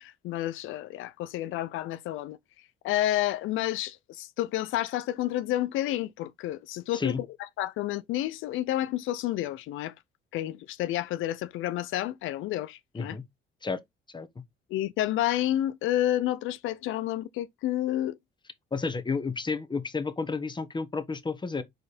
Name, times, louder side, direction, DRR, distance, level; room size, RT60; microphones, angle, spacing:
voice 1, 0.0-2.4 2.8-7.1 7.6-9.9 10.3-13.2 14.7-18.2, left 13 dB, 85° left, 0.5 m, -30 dB
voice 2, 18.7-21.6, left 4 dB, 25° left, 1.2 m, -31 dB
5.2 x 4.3 x 4.2 m
cardioid pair, 90°, 20 cm